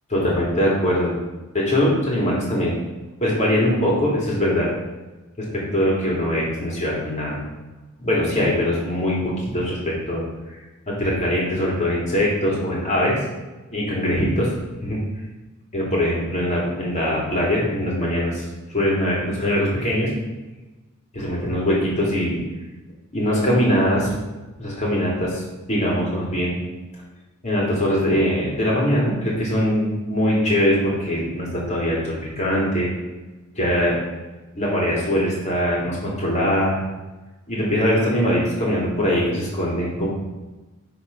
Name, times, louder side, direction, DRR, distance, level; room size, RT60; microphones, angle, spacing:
voice 1, 0.1-1.1 1.5-2.8 3.2-4.7 5.4-7.4 8.0-10.2 10.9-13.2 13.7-14.5 14.8-15.0 15.7-18.4 18.7-20.1 21.1-22.4 23.1-24.1 24.6-25.4 25.7-26.5 27.4-32.9 33.5-34.0 34.5-36.8 37.5-40.1, equal, 35° left, -4 dB, 2.9 m, -22 dB
10.5 x 4.2 x 5.4 m, 1.1 s
head